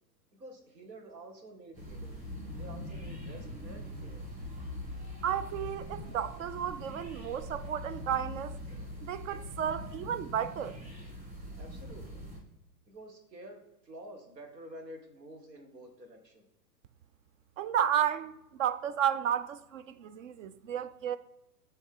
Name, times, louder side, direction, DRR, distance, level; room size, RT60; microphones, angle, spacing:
voice 1, 0.4-2.1 2.6-4.2 11.6-12.3 12.9-16.4, right 1 dB, 90° right, 1.6 m, -49 dB
sound 1, 1.7-12.4, left 1 dB, 15° right, 2.1 m, -42 dB
voice 2, 5.2-8.6 9.0-10.8 17.6-18.3 18.6-21.2, right 9 dB, 55° right, 0.5 m, -32 dB
8.0 x 3.2 x 3.8 m
hypercardioid pair, 120°, 49 cm